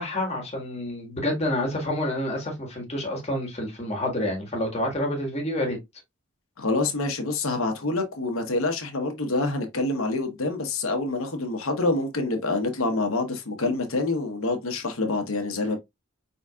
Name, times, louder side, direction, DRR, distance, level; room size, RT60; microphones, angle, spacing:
voice 1, 0.0-5.8, left 1 dB, 30° left, 1.8 m, -28 dB
voice 2, 6.6-15.8, left 2 dB, 85° left, 1.0 m, -26 dB
4.7 x 4.0 x 2.4 m
head